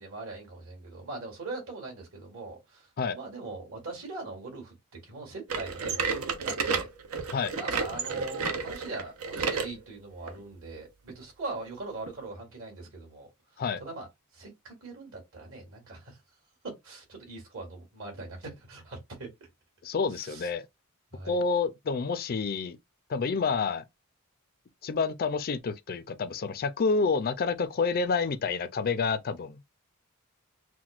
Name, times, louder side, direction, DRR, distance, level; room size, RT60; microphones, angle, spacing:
voice 1, 0.0-4.7 5.0-6.9 7.5-13.3 13.8-14.1 14.3-16.2 16.6-19.5 20.1-20.5 21.1-21.4, right 3 dB, 65° right, 2.1 m, -41 dB
sound 1, 5.5-9.7 10.3-10.4 11.1-11.2 12.1-12.2, right 5 dB, 80° right, 0.8 m, -31 dB
voice 2, 19.8-20.7 21.2-22.8 23.1-23.8 24.8-29.6, left 4 dB, 45° left, 0.4 m, -28 dB
5.9 x 2.2 x 2.4 m
head